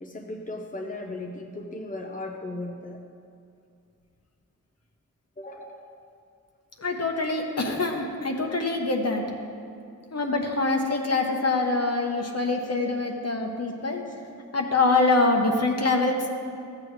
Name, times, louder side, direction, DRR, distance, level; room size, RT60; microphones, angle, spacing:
voice 1, 0.0-3.0 5.4-6.0 14.1-14.2, left 2 dB, 25° left, 2 dB, 0.7 m, -37 dB
voice 2, 6.8-9.2 10.1-14.0 14.5-16.2, left 3 dB, 50° left, 2 dB, 1.0 m, -24 dB
14.0 x 7.8 x 3.2 m, 2.4 s
wide cardioid pair, 90°, 31 cm